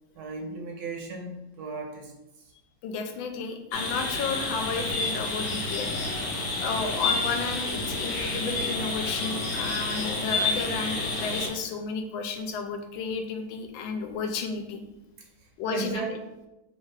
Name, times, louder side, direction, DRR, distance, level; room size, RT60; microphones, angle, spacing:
voice 1, 0.1-2.5 15.2-16.2, right 4 dB, 70° right, 1 dB, 0.9 m, -37 dB
voice 2, 2.8-6.0 6.6-14.8 15.6-16.2, left 4 dB, 90° left, 5 dB, 1.4 m, -32 dB
sound 1, 3.7-11.5, left 3 dB, 55° left, 0.9 m, -29 dB
3.4 x 2.8 x 4.6 m, 0.97 s
omnidirectional pair, 2.1 m